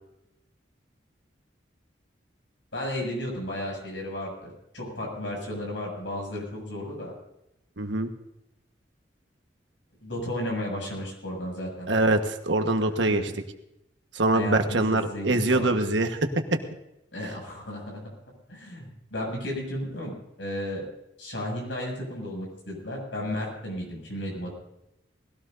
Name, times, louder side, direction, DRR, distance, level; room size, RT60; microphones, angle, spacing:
voice 1, 2.7-7.1 10.0-11.9 13.0-13.2 14.3-15.7 17.1-18.1 18.5-20.8 21.2-24.5, left 1 dB, 80° left, 0 dB, 7.4 m, -34 dB
voice 2, 7.8-8.1 11.9-13.3 14.1-16.2, right 2 dB, 80° right, 6 dB, 1.4 m, -24 dB
20.5 x 16.5 x 2.7 m, 0.86 s
head